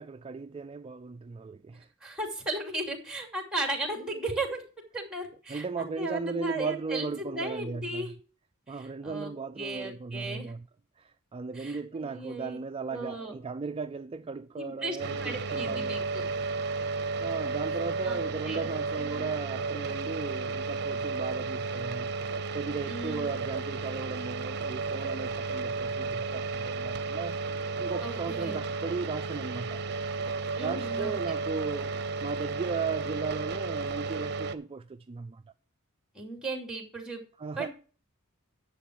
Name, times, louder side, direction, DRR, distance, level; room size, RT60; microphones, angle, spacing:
voice 1, 0.0-1.9 5.5-8.1 8.7-10.7 11.0-16.0 17.2-22.1 22.5-27.4 27.8-29.8 30.6-35.4 37.4-37.7, right 4 dB, 25° right, 0.4 m, -36 dB
voice 2, 2.0-4.6 4.9-8.1 8.7-10.5 11.5-12.6 12.9-13.4 14.6-16.3 18.0-18.7 19.0-19.4 22.9-23.4 28.0-28.6 30.6-31.4 36.1-37.2 37.6-37.7, right 2 dB, 5° right, 2.6 m, -36 dB
sound 1, 15.0-34.6, right 4 dB, 50° right, 0.8 m, -33 dB
10.5 x 7.3 x 4.5 m
head